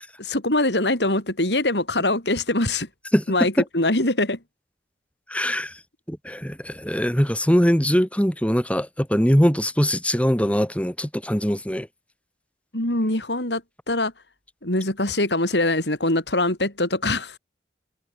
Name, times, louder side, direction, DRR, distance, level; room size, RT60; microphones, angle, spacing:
voice 1, 0.2-2.9 3.3-4.4 12.7-13.6 13.9-14.1 14.6-17.4, left 2 dB, 70° left, 6.9 m, -23 dB
voice 2, 5.3-5.7 6.1-11.9, equal, 10° left, 7.1 m, -22 dB
head